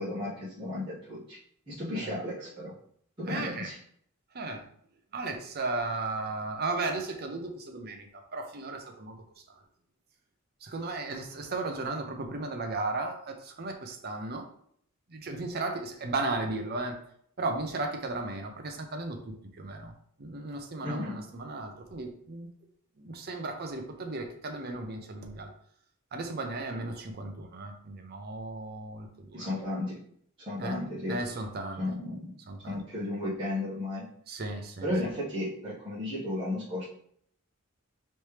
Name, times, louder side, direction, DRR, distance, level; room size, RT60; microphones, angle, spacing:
voice 1, 0.0-1.4 1.7-2.7 3.2-3.8 20.8-21.1 29.3-30.0 30.4-31.2 31.8-32.3 32.6-34.0 34.8-36.8, left 1 dB, 25° right, -11 dB, 1.5 m, -34 dB
voice 2, 3.3-3.7 4.3-4.7 5.1-9.2 10.6-14.5 15.1-17.0 17.4-19.9 20.2-22.5 23.0-25.5 26.1-29.5 30.6-30.8 31.1-31.8 32.5-32.8 34.3-34.9, right 3 dB, 50° right, 4 dB, 0.7 m, -35 dB
4.3 x 3.3 x 3.3 m, 0.65 s
head